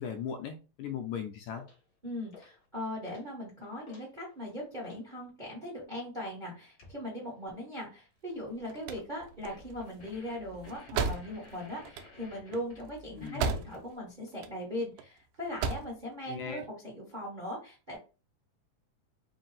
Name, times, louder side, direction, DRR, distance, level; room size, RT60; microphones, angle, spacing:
voice 1, 0.0-1.6 13.2-13.5 16.3-16.6, left 7 dB, 80° left, 5 dB, 1.7 m, -38 dB
sound 1, 1.6-1.8 2.3-2.7 3.0-3.3 3.6-5.1 6.8-7.0 9.5-13.9, left 4 dB, 45° left, 1.1 m, -55 dB
voice 2, 2.0-18.0, left 1 dB, 65° right, -3 dB, 0.4 m, -39 dB
sound 2, 8.4-14.0 14.3-15.0 15.4-16.0, right 5 dB, 85° right, 2.1 m, -35 dB
5.0 x 2.0 x 3.9 m, 0.32 s
omnidirectional pair, 3.6 m